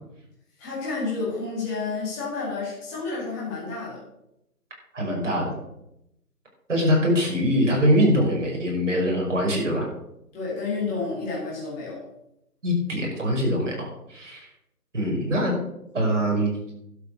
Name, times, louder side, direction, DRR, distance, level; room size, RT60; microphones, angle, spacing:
voice 1, 0.6-4.0 10.3-12.0, left 4 dB, 5° left, -7 dB, 2.1 m, -30 dB
voice 2, 4.9-5.5 6.7-9.9 12.6-14.5 14.9-15.5 15.9-16.5, equal, 50° right, -1 dB, 5.6 m, -23 dB
12.0 x 7.9 x 6.4 m, 0.83 s
figure-of-eight pair, 170°, 46 cm